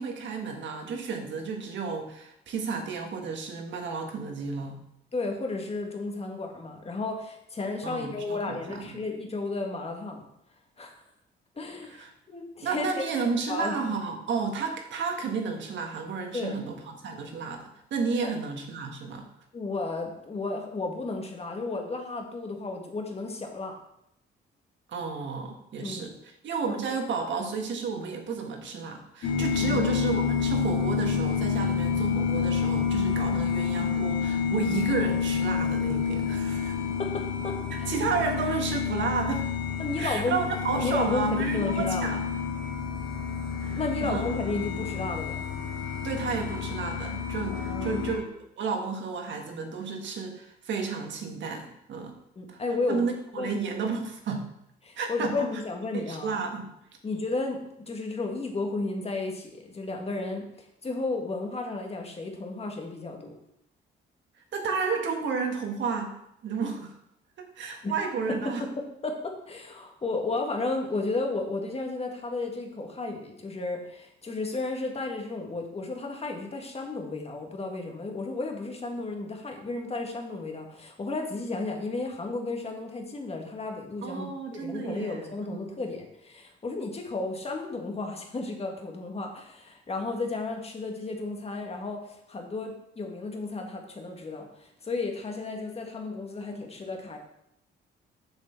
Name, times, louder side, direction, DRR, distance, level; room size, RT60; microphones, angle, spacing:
voice 1, 0.0-4.8 7.8-9.0 11.9-12.1 12.6-19.3 24.9-26.1 26.4-36.8 37.9-39.5 40.0-42.2 43.6-44.2 46.0-48.2 48.6-52.1 52.5-52.6 52.9-54.4 55.0-55.5 55.9-56.7 64.5-66.1 66.4-66.9 67.4-68.6 84.0-85.8, right 5 dB, 70° right, 3 dB, 1.5 m, -32 dB
voice 2, 5.1-10.3 10.8-10.9 11.6-12.9 13.5-13.9 16.3-16.6 18.2-18.3 19.5-23.8 25.8-26.2 26.6-26.8 29.6-30.0 37.0-37.9 39.8-40.4 40.8-42.2 43.8-45.4 47.5-48.1 52.4-53.1 53.3-53.6 54.8-56.3 57.0-60.5 60.8-63.3 67.8-67.9 68.3-97.2, left 3 dB, 30° left, 2 dB, 1.7 m, -33 dB
sound 1, 29.2-48.2, left 6 dB, 85° left, 1.4 m, -29 dB
6.9 x 6.5 x 4.5 m, 0.78 s
cardioid pair, 90°, 20 cm